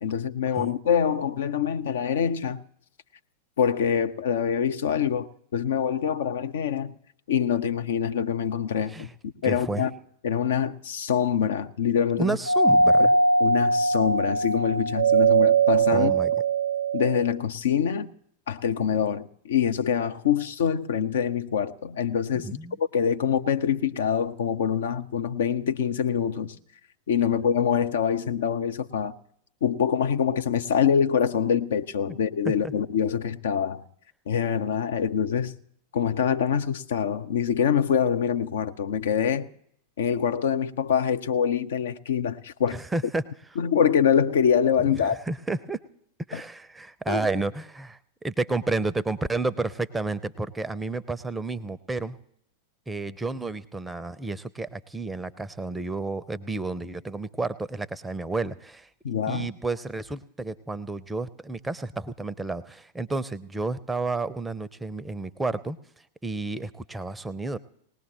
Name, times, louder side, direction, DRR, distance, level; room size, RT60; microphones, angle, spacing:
voice 1, 0.0-2.6 3.6-7.0 7.3-9.1 9.4-9.9 10.2-12.4 13.0-13.1 13.4-16.1 16.9-18.1 18.5-22.5 22.8-26.5 27.1-29.1 29.6-33.8 34.3-35.5 35.9-39.5 40.0-42.8 43.6-45.2 46.3-46.4 47.1-47.2 59.0-59.5, left 8 dB, 60° left, 0.6 m, -25 dB
voice 2, 9.4-9.9 12.2-13.1 15.9-16.3 22.4-22.8 32.1-32.2 32.6-32.7 42.7-43.2 45.0-45.8 46.3-52.2 52.9-65.8 66.2-67.6, right 3 dB, 10° right, 0.6 m, -31 dB
Doorbell, 12.5-17.3, right 4 dB, 75° right, 0.6 m, -21 dB
19.5 x 18.5 x 3.0 m
figure-of-eight pair, 90°, 0 cm